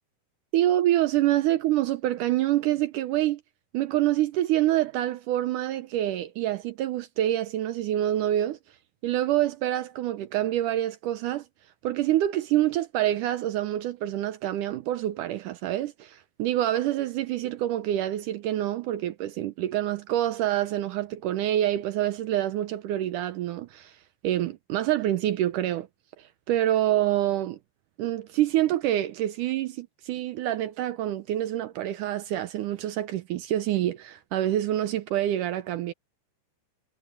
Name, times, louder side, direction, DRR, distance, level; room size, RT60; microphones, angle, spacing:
voice 1, 0.5-3.4 3.7-8.6 9.0-11.5 11.8-23.9 24.2-25.9 26.2-27.6 28.0-35.9, right 13 dB, 75° right, 2.2 m, -26 dB
omnidirectional pair, 4.0 m